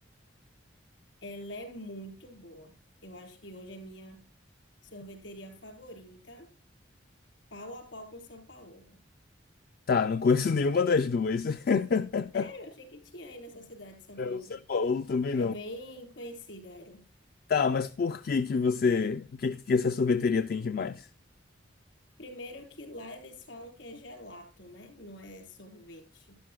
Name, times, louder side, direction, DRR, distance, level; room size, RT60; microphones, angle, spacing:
voice 1, 1.2-2.7 3.0-4.2 4.8-6.5 7.5-9.0 12.3-14.6 15.4-17.0 22.2-26.4, left 1 dB, 70° left, 4.2 m, -45 dB
voice 2, 9.9-12.5 14.2-15.5 17.5-21.1, left 5 dB, 50° left, 0.4 m, -27 dB
12.5 x 11.5 x 2.3 m
head